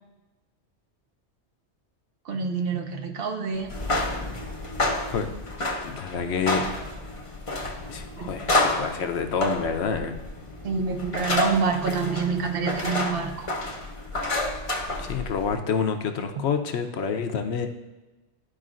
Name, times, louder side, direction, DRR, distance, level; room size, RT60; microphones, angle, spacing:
voice 1, 2.2-3.7 8.2-8.3 10.6-13.5, right 5 dB, 60° right, 5 dB, 0.8 m, -27 dB
sound 1, 3.6-15.5, left 2 dB, 35° left, 0.7 m, -29 dB
voice 2, 5.8-6.6 7.9-10.1 15.0-17.7, left 6 dB, 70° left, 6 dB, 0.9 m, -28 dB
12.0 x 4.8 x 2.5 m, 1.1 s
omnidirectional pair, 1.2 m